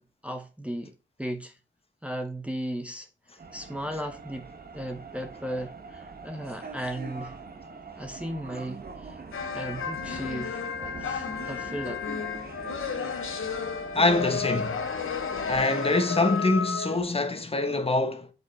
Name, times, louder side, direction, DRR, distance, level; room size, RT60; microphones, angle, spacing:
voice 1, 0.0-1.6 2.0-3.1 3.5-7.4 8.0-9.2 9.5-10.6 11.0-12.1, equal, 5° right, 0.9 m, -36 dB
sound 1, 3.4-15.6, right 4 dB, 50° right, 1.2 m, -43 dB
sound 2, 9.3-17.0, left 6 dB, 80° left, 1.2 m, -32 dB
voice 2, 13.9-14.9 15.5-18.3, left 2 dB, 30° left, 1.3 m, -25 dB
6.9 x 5.4 x 4.1 m
wide cardioid pair, 85°, 21 cm